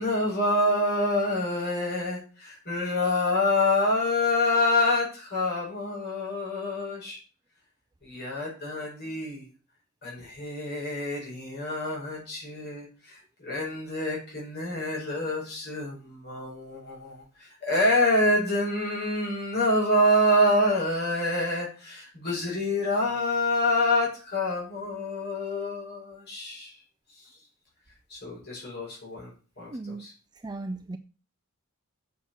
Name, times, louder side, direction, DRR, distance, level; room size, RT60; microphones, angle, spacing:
voice 1, 0.0-7.2 8.0-9.5 10.0-26.8 27.1-27.4 28.1-30.1, left 1 dB, 45° left, -4 dB, 5.0 m, -27 dB
voice 2, 29.7-30.1 30.4-31.0, right 2 dB, 20° right, 7 dB, 0.5 m, -36 dB
7.3 x 6.3 x 7.0 m, 0.37 s
head